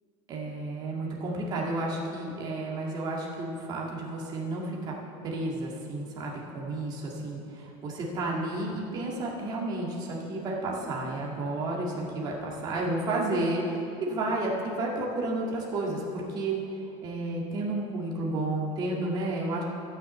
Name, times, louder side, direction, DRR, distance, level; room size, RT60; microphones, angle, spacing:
voice 1, 0.3-4.9 5.2-16.6 17.0-19.6, right 2 dB, 30° right, -3 dB, 2.1 m, -31 dB
13.5 x 6.3 x 8.0 m, 2.7 s
cardioid pair, 170°, 14 cm